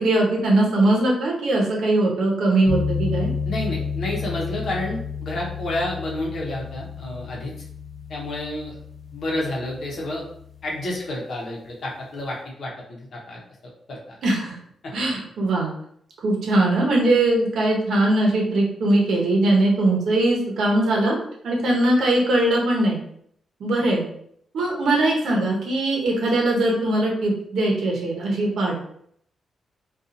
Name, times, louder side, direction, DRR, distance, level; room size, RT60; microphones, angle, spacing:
voice 1, 0.0-3.3 14.2-14.6 14.9-15.7 16.2-21.2 21.4-23.0 23.6-24.1 24.5-28.8, right 2 dB, 75° right, -1 dB, 0.8 m, -21 dB
sound 1, 2.7-10.8, left 5 dB, 20° left, 0.6 m, -31 dB
voice 2, 3.4-7.5 8.1-8.8 9.1-10.2 10.6-13.4 13.9-14.2 14.8-14.9, left 1 dB, 60° left, -2 dB, 0.8 m, -30 dB
2.7 x 2.3 x 2.5 m, 0.67 s
wide cardioid pair, 145°, 0 cm